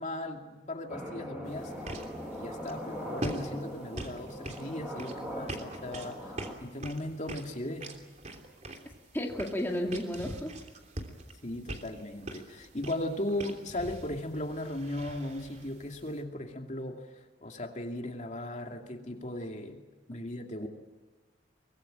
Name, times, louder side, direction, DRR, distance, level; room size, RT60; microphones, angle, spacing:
voice 1, 0.0-1.7 2.3-6.3 6.6-7.9 11.4-17.1 17.4-19.8 20.1-20.7, left 1 dB, 45° left, 3 dB, 2.5 m, -37 dB
sound 1, 0.9-6.5, equal, 10° right, 5.8 m, -40 dB
sound 2, 1.4-16.2, right 1 dB, 40° right, 3.1 m, -44 dB
voice 2, 9.1-10.5 20.6-20.7, equal, 15° left, 1 dB, 2.2 m, -32 dB
24.5 x 20.0 x 9.0 m, 1.3 s
head